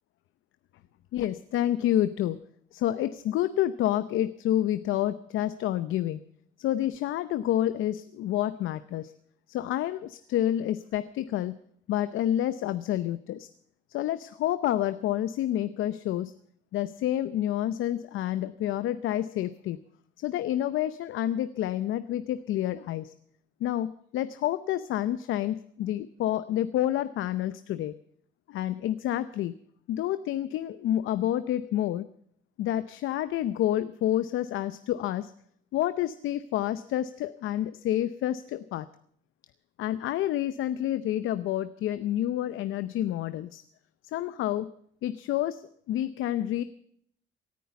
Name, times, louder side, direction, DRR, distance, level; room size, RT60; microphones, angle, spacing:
voice 1, 1.1-2.4 2.7-6.2 6.6-9.1 9.5-11.6 11.9-13.5 13.9-16.3 16.7-19.8 20.2-23.1 23.6-27.9 28.5-29.6 29.9-32.1 32.6-35.3 35.7-38.9 39.8-43.6 44.1-44.7 45.0-45.6 45.9-46.6, left 12 dB, 85° left, 13 dB, 0.7 m, -29 dB
18.0 x 10.0 x 7.0 m, 0.65 s
cardioid pair, 90°, 20 cm